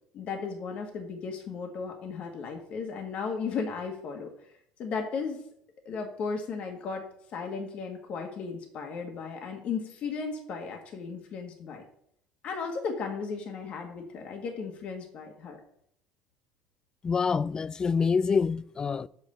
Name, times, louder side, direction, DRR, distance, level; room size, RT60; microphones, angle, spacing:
voice 1, 0.1-4.3 4.8-5.5 5.8-11.8 12.4-15.6, left 5 dB, 55° left, 1.5 m, -35 dB
voice 2, 17.0-19.1, left 5 dB, 30° left, 0.3 m, -26 dB
5.6 x 5.6 x 6.8 m
supercardioid pair, 85°, 3 cm